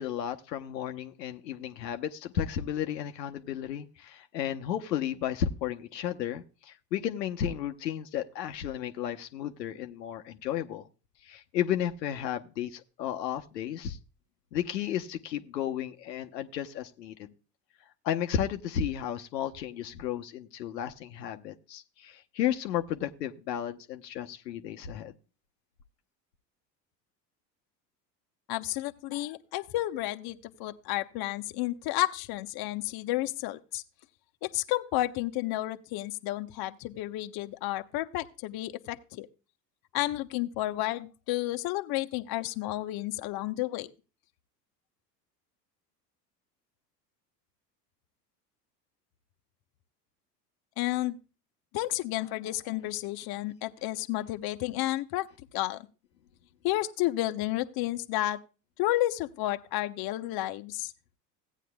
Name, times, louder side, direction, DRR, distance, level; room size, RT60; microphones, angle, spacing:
voice 1, 0.0-10.9 11.2-14.0 14.5-17.3 18.0-25.1, left 10 dB, 80° left, 6 dB, 0.9 m, -33 dB
voice 2, 28.5-33.8 34.4-39.3 39.9-43.9 50.8-51.2 51.7-55.3 55.5-55.9 56.6-58.4 58.8-60.9, left 16 dB, 45° left, 8 dB, 0.9 m, -31 dB
16.5 x 9.2 x 2.2 m, 0.33 s
hypercardioid pair, 75°, 49 cm